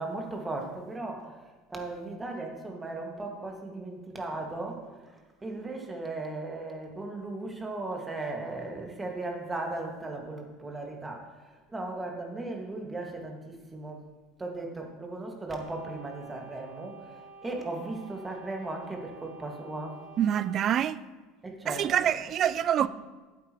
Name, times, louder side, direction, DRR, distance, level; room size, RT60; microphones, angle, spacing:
voice 1, 0.0-5.0 5.4-14.0 14.4-20.0 21.4-22.1 22.8-22.9, right 2 dB, 15° right, 2.0 m, -37 dB
sound 1, 15.5-20.7, right 3 dB, 80° left, 1.9 m, -50 dB
voice 2, 20.2-21.0 21.7-22.9, right 10 dB, 45° right, 0.4 m, -26 dB
12.0 x 8.3 x 3.1 m
hypercardioid pair, 75°, 0 cm